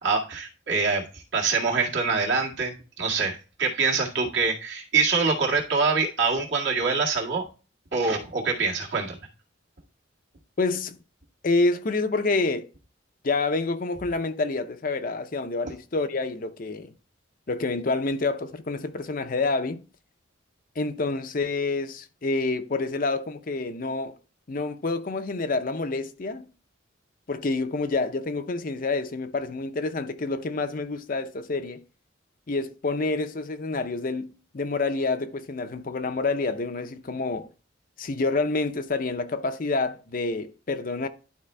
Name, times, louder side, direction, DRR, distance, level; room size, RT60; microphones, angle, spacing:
voice 1, 0.0-7.4 7.9-9.2, right 4 dB, 65° right, 2.0 m, -25 dB
voice 2, 10.6-11.0 11.4-12.7 13.2-16.9 17.5-19.8 20.8-24.2 24.5-26.5 27.3-31.8 32.5-37.5 38.0-41.1, left 3 dB, 45° left, 0.6 m, -28 dB
11.5 x 4.4 x 3.3 m
head